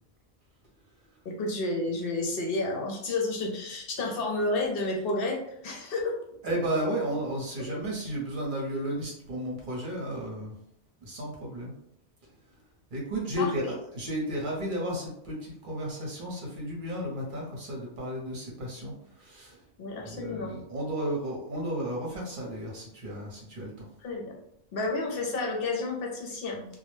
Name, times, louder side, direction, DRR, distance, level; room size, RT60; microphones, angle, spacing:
voice 1, 1.2-6.2 7.7-7.8 13.4-13.7 19.8-20.6 24.0-24.2 24.7-26.7, left 2 dB, 65° left, 0 dB, 0.8 m, -31 dB
voice 2, 6.4-10.5 11.0-11.7 12.9-19.6 20.0-23.9, right 1 dB, 55° right, -2 dB, 0.8 m, -33 dB
2.2 x 2.0 x 3.0 m, 0.73 s
omnidirectional pair, 1.1 m